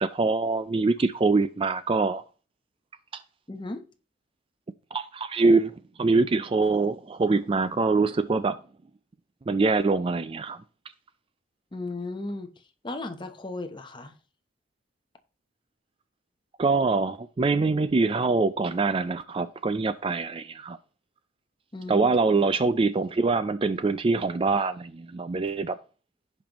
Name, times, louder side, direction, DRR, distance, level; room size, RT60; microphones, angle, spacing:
voice 1, 0.0-2.2 3.1-3.2 4.9-8.6 9.5-10.6 16.6-20.8 21.9-25.8, right 3 dB, 25° right, 0.3 m, -24 dB
voice 2, 3.5-3.8 11.7-12.5 12.8-14.1 21.7-22.1, left 2 dB, 25° left, 0.9 m, -35 dB
16.0 x 5.4 x 3.0 m
head